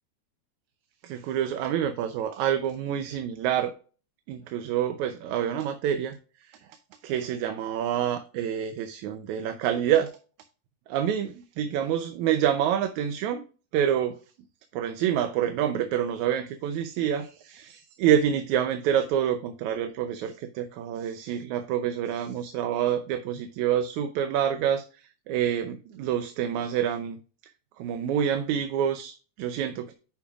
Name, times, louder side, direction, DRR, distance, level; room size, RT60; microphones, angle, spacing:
voice 1, 1.0-3.7 4.3-6.2 6.5-6.6 7.0-10.1 10.9-13.4 13.7-14.2 14.7-27.2 27.8-29.9, right 9 dB, 80° right, 8 dB, 2.1 m, -27 dB
9.9 x 6.0 x 2.4 m, 0.35 s
omnidirectional pair, 3.4 m